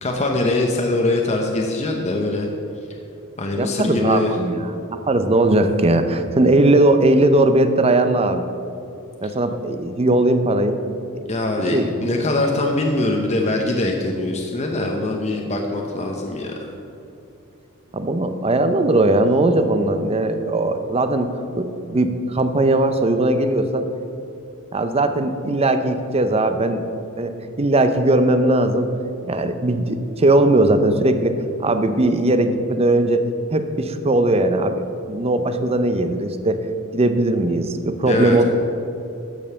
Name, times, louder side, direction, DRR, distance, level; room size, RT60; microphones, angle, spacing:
voice 1, 0.0-2.5 3.4-4.3 11.3-16.7 38.1-38.4, left 2 dB, 30° left, 1 dB, 0.8 m, -22 dB
voice 2, 3.6-8.4 9.2-10.8 11.1-11.2 11.7-11.9 17.9-23.9 24.7-26.8 27.2-28.9 29.2-33.2 33.5-36.6 36.9-38.4, right 2 dB, 30° right, 9 dB, 0.6 m, -19 dB
12.5 x 5.4 x 6.8 m, 2.7 s
head